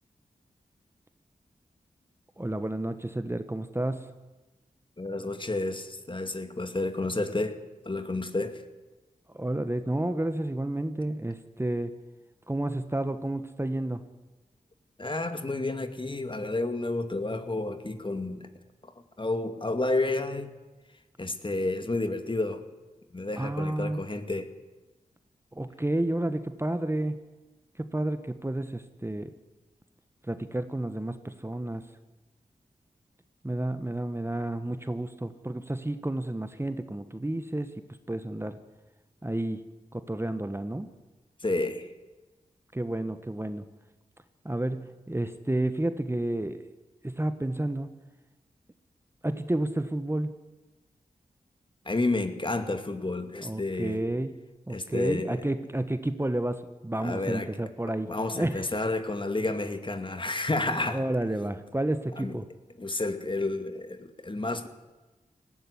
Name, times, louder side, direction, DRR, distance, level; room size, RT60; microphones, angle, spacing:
voice 1, 2.4-4.1 9.3-11.9 12.5-14.1 23.4-24.0 25.5-27.2 27.8-29.3 30.3-31.8 33.4-37.7 38.1-38.6 39.2-39.6 39.9-40.9 42.7-43.7 44.4-46.7 47.0-47.9 49.2-50.3 53.4-54.4 54.7-58.1 58.3-58.6 60.9-62.5, right 1 dB, 15° right, 10 dB, 1.4 m, -31 dB
voice 2, 5.0-7.6 7.9-8.6 15.0-18.5 19.2-20.5 21.2-22.6 23.1-24.5 41.4-41.9 51.9-54.0 54.7-55.4 57.0-57.5 58.1-61.0 62.2-62.4 62.8-64.7, left 2 dB, 35° left, 8 dB, 2.2 m, -30 dB
18.0 x 15.0 x 9.9 m, 1.2 s
cardioid pair, 50°, 15 cm